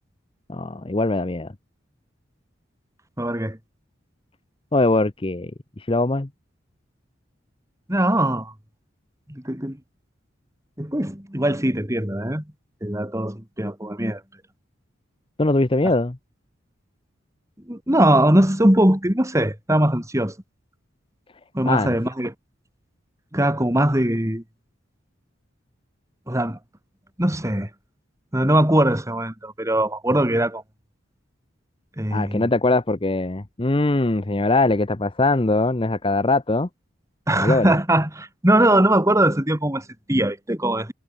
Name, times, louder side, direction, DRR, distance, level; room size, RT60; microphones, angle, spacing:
voice 1, 0.5-1.5 4.7-5.5 5.9-6.3 15.4-16.2 21.6-21.9 32.1-36.7 37.3-37.7, left 2 dB, 25° left, 0.8 m, -21 dB
voice 2, 3.2-3.6 7.9-8.5 9.3-9.8 10.8-12.4 12.8-14.2 17.7-20.3 21.5-22.3 23.3-24.4 26.3-26.6 27.2-27.7 28.3-30.6 32.0-32.5 37.3-40.9, right 1 dB, 15° right, 3.0 m, -21 dB
head